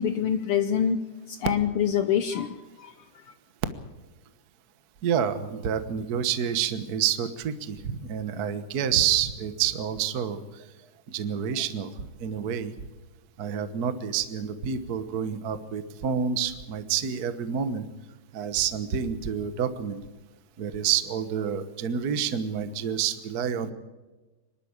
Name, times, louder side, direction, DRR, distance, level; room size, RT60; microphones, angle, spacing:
voice 1, 0.0-2.9, left 8 dB, 85° left, 10 dB, 1.2 m, -26 dB
voice 2, 5.0-10.6 11.1-12.7 13.4-17.9 18.3-20.0 20.6-23.7, right 8 dB, 65° right, 11 dB, 0.9 m, -28 dB
25.0 x 12.0 x 8.8 m, 1.2 s
omnidirectional pair, 3.6 m